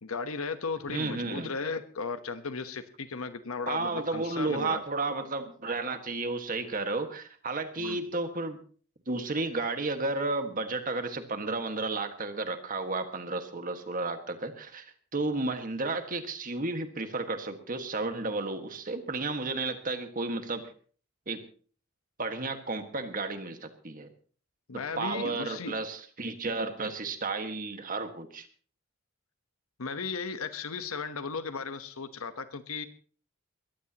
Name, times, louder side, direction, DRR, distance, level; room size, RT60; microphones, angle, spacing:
voice 1, 0.0-4.8 7.8-8.0 24.7-25.8 29.8-32.9, left 4 dB, 90° left, 10 dB, 1.1 m, -36 dB
voice 2, 0.9-1.5 3.7-8.6 9.1-20.6 21.3-21.4 22.2-24.1 25.0-28.5, right 3 dB, 40° right, 7 dB, 1.7 m, -32 dB
22.0 x 15.0 x 2.9 m, 0.43 s
head